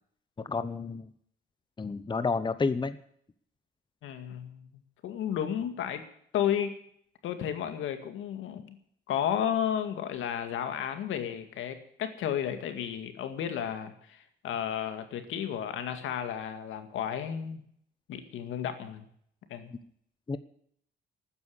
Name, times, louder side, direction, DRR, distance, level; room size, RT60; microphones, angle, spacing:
voice 1, 0.4-1.1 1.8-3.0 20.3-20.4, left 4 dB, 25° left, 13 dB, 0.9 m, -30 dB
voice 2, 4.0-6.0 6.3-6.8 7.2-8.8 9.1-17.6 18.1-19.1 19.5-19.7, left 9 dB, 85° left, 8 dB, 2.1 m, -33 dB
12.5 x 9.7 x 9.8 m, 0.66 s
cardioid pair, 90°, 20 cm